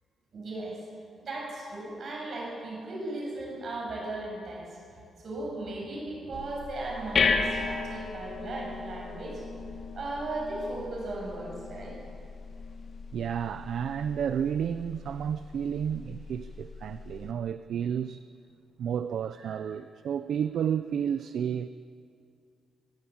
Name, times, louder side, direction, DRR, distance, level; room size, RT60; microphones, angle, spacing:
voice 1, 0.3-0.8 1.2-9.4 9.9-12.0 19.4-19.5, right 2 dB, 45° right, 7.9 m, -37 dB
sound 1, 6.3-17.3, left 4 dB, 45° left, 1.7 m, -35 dB
voice 2, 13.1-18.2 18.8-21.7, right 8 dB, 65° right, 0.5 m, -31 dB
23.5 x 15.0 x 8.7 m
wide cardioid pair, 170°, 0 cm